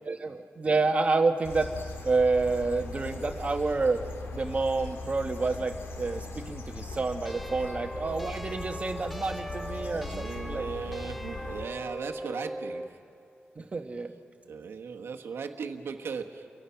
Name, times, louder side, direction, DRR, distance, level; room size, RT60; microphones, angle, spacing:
voice 1, 0.0-1.7 2.0-4.0 4.3-10.7 13.6-14.1, right 3 dB, 35° right, 6 dB, 1.2 m, -28 dB
sound 1, 1.4-11.6, left 3 dB, 80° left, 2.0 m, -40 dB
sound 2, 7.3-13.0, equal, ahead, 0.5 m, -40 dB
voice 2, 9.8-13.2 14.5-16.6, right 5 dB, 90° right, 4 dB, 1.3 m, -38 dB
30.0 x 22.5 x 5.8 m, 2.6 s
wide cardioid pair, 160°, 4 cm